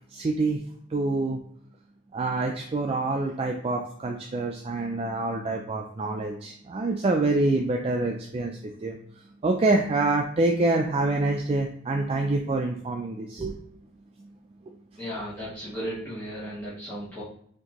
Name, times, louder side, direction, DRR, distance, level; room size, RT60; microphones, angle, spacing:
voice 1, 0.1-0.6 0.9-1.4 2.1-8.5 8.8-9.0 9.4-13.6, right 2 dB, 30° right, 2 dB, 0.3 m, -26 dB
voice 2, 15.0-17.2, equal, 10° left, -12 dB, 1.1 m, -35 dB
4.4 x 2.7 x 2.9 m, 0.67 s
head